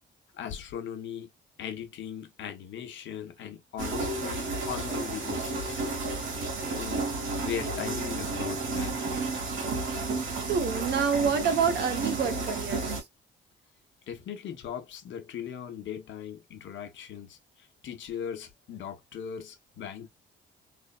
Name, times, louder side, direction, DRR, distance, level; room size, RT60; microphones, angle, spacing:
voice 1, 0.3-1.3 1.6-5.8 6.6-7.1 7.4-9.2 14.1-20.1, left 8 dB, 70° left, 0.8 m, -39 dB
sound 1, 3.8-13.0, right 3 dB, 80° right, 1.5 m, -32 dB
voice 2, 10.5-13.0, right 6 dB, 60° right, 0.8 m, -27 dB
3.3 x 2.0 x 2.3 m
cardioid pair, 90°, 20 cm